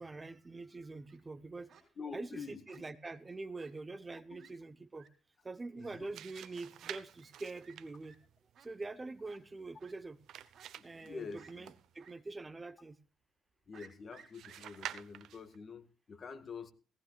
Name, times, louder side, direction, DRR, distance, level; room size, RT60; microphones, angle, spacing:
voice 1, 0.0-1.7 2.1-5.1 5.4-8.2 8.6-10.2 10.8-13.0, right 3 dB, 25° right, 0.9 m, -45 dB
Fowl, 0.8-1.2 1.7-1.8 2.7-3.2 3.6-3.7 4.0-4.1 4.4-4.5 4.9-5.1 5.8-5.9 6.8-7.0 7.2-7.4 7.6-7.8 8.0-8.2 8.5-8.7 9.2-9.4 9.8-9.9 10.5-11.1 11.3-11.5 12.0-12.1 12.5-12.6 13.7-14.9, right 6 dB, 55° right, 3.8 m, -59 dB
voice 2, 2.0-2.8 4.3-4.4 5.8-6.1 10.8-11.7 13.7-16.7, left 5 dB, 45° left, 1.8 m, -47 dB
sound 1, 5.8-12.1 14.3-15.6, right 11 dB, 80° right, 0.9 m, -50 dB
18.5 x 17.0 x 2.4 m
cardioid pair, 90°, 0 cm